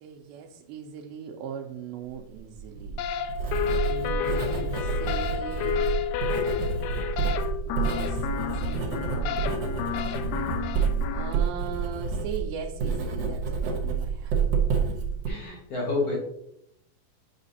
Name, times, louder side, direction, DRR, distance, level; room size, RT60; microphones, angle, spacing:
voice 1, 0.0-3.0 3.9-5.9 7.7-14.5, right 7 dB, 85° right, 1 dB, 2.4 m, -39 dB
Writing, 2.5-15.3, right 5 dB, 60° right, 1.7 m, -29 dB
sound 1, 3.0-11.3, left 9 dB, 85° left, 2.4 m, -31 dB
voice 2, 15.3-16.2, left 3 dB, 50° left, -2 dB, 2.1 m, -29 dB
9.0 x 5.8 x 2.8 m, 0.75 s
omnidirectional pair, 4.3 m